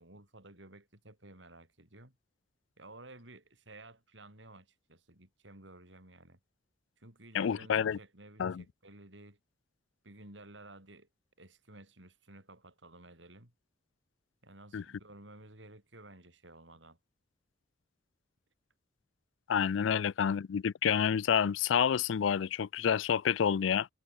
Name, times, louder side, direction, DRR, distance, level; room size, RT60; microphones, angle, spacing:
voice 1, 0.0-2.2 2.8-6.4 7.0-9.4 10.0-11.1 11.4-13.5 14.4-17.0 19.9-20.0, right 2 dB, 75° right, 7.6 m, -54 dB
voice 2, 7.3-8.0 8.4-8.6 14.7-14.8 19.5-23.9, left 8 dB, 80° left, 0.4 m, -29 dB
head